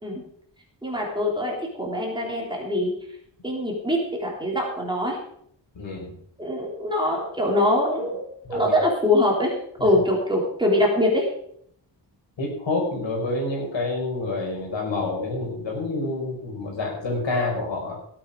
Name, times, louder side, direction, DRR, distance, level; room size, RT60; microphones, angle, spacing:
voice 1, 0.8-2.9 3.4-5.2 6.4-9.5 9.8-11.3, left 1 dB, 10° right, -2 dB, 3.3 m, -23 dB
voice 2, 5.7-6.2 8.5-8.7 9.8-9.9 12.4-18.0, left 2 dB, 75° left, -1 dB, 5.4 m, -28 dB
16.5 x 8.5 x 5.1 m, 0.66 s
wide cardioid pair, 145°, 45 cm